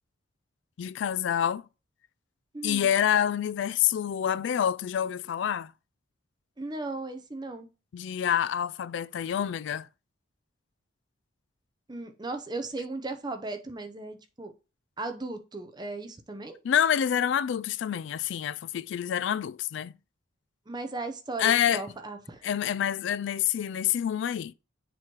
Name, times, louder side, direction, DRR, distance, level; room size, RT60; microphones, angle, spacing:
voice 1, 0.8-1.6 2.6-5.7 7.9-9.9 16.6-19.9 21.4-21.8 22.4-24.5, left 9 dB, 65° left, 0.3 m, -27 dB
voice 2, 2.5-2.9 6.6-7.7 11.9-14.5 15.0-16.6 20.7-22.4, right 2 dB, 20° right, 0.7 m, -36 dB
7.2 x 3.1 x 5.9 m
head